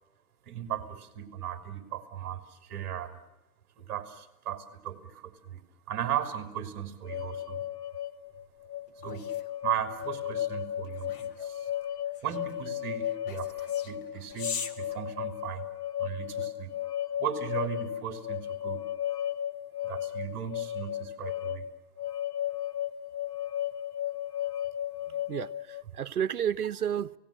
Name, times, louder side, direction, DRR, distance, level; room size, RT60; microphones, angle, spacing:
voice 1, 0.5-3.2 3.8-5.6 5.9-7.6 9.0-9.3 9.6-11.7 12.2-15.7 16.0-16.7 17.2-18.8 19.8-21.6, right 10 dB, 25° right, 3.2 m, -36 dB
sound 1, 7.0-25.8, left 11 dB, 75° left, 1.5 m, -35 dB
sound 2, 8.4-15.9, left 6 dB, 30° left, 1.6 m, -43 dB
voice 2, 25.1-27.2, right 9 dB, 65° right, 1.0 m, -32 dB
30.0 x 18.0 x 8.8 m
hypercardioid pair, 150°, 48 cm